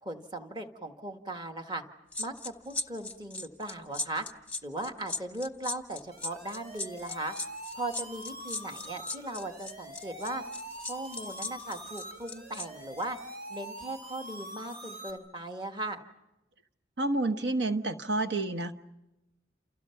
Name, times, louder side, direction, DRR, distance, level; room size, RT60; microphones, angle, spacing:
voice 1, 0.0-1.8 2.2-4.2 4.6-7.3 7.7-10.4 10.9-13.2 13.5-16.0, right 2 dB, 25° right, 5 dB, 1.6 m, -38 dB
sound 1, 2.1-12.7 13.0-13.2, left 2 dB, 5° left, 1.0 m, -38 dB
sound 2, 6.1-15.1, equal, 55° right, 4.5 m, -44 dB
voice 2, 17.0-18.7, right 2 dB, 70° right, 8 dB, 1.3 m, -29 dB
29.5 x 28.5 x 5.8 m, 0.98 s
head